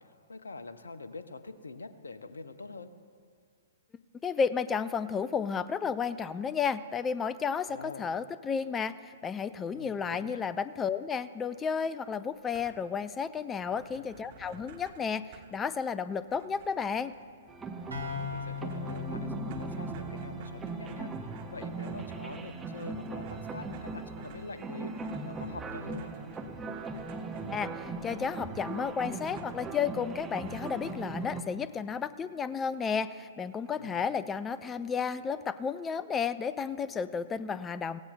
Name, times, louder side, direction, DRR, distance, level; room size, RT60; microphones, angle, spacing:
voice 1, 0.0-2.9 7.7-8.2 9.7-10.4 13.7-14.1 18.0-26.2 33.8-34.1, left 3 dB, 70° left, 11 dB, 0.7 m, -45 dB
voice 2, 4.2-17.1 27.5-38.0, left 6 dB, 15° left, 15 dB, 0.3 m, -32 dB
sound 1, 12.3-13.0 13.3-13.4 13.6-31.4, right 5 dB, 40° right, 1.3 m, -55 dB
sound 2, 17.5-31.4, right 3 dB, 10° right, 0.7 m, -39 dB
sound 3, 17.9-21.6, left 5 dB, 75° right, 2.1 m, -40 dB
17.0 x 16.0 x 2.2 m, 2.2 s
figure-of-eight pair, 115°, 0 cm